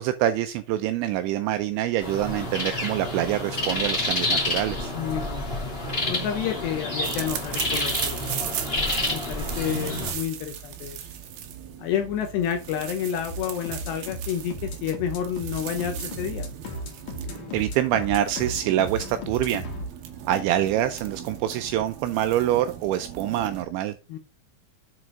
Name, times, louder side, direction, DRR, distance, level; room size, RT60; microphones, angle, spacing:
voice 1, 0.0-4.9 17.5-19.6 20.3-23.9, right 12 dB, 85° right, 9 dB, 2.6 m, -25 dB
sound 1, 2.0-10.1, left 1 dB, 25° left, 1.3 m, -29 dB
voice 2, 4.9-5.6 6.1-8.5 9.1-11.1 11.8-16.5 24.1-24.2, left 9 dB, 75° left, 6 dB, 2.6 m, -30 dB
sound 2, 7.0-23.6, right 9 dB, 65° right, 2.5 m, -37 dB
sound 3, 13.3-19.9, equal, 50° left, 2.8 m, -36 dB
8.1 x 6.1 x 3.7 m, 0.29 s
omnidirectional pair, 5.8 m